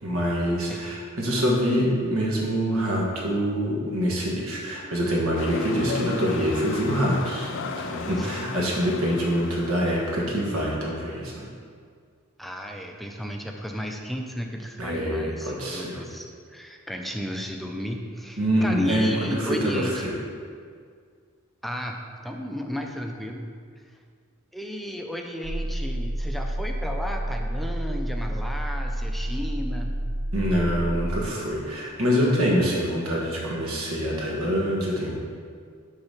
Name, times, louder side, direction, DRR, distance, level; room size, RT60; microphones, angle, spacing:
voice 1, 0.0-11.5 14.8-16.0 18.4-20.1 30.3-35.2, equal, 75° right, -3 dB, 1.5 m, -25 dB
sound 1, 5.4-10.5, left 4 dB, 60° left, 0.4 m, -36 dB
voice 2, 12.4-20.0 21.6-23.5 24.5-30.0, equal, ahead, 2 dB, 0.4 m, -33 dB
sound 2, 25.4-31.2, right 1 dB, 50° right, 0.6 m, -29 dB
6.8 x 4.0 x 5.7 m, 2.1 s
head